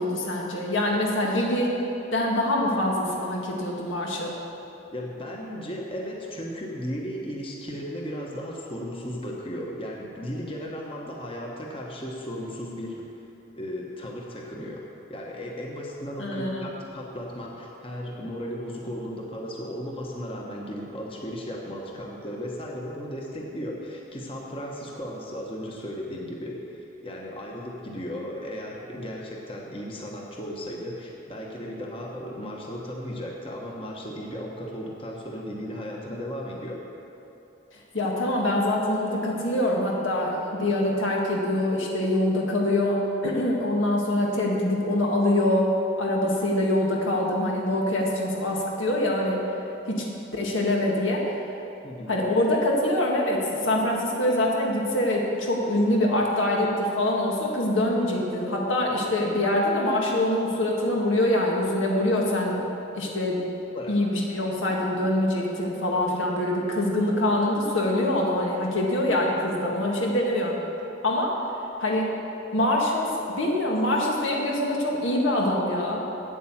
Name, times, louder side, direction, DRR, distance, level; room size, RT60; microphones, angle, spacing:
voice 1, 0.0-1.7 2.1-4.4 16.2-16.6 37.9-45.7 46.0-49.4 49.9-50.0 50.3-51.3 52.1-62.6 62.9-63.4 63.9-70.6 71.0-71.3 71.8-72.1 72.5-76.0, left 1 dB, 90° left, -1 dB, 1.8 m, -24 dB
voice 2, 4.9-13.0 13.5-14.8 15.1-36.8 51.8-52.1 63.7-64.0, equal, 30° left, -2 dB, 1.1 m, -35 dB
8.8 x 8.6 x 7.3 m, 2.9 s
head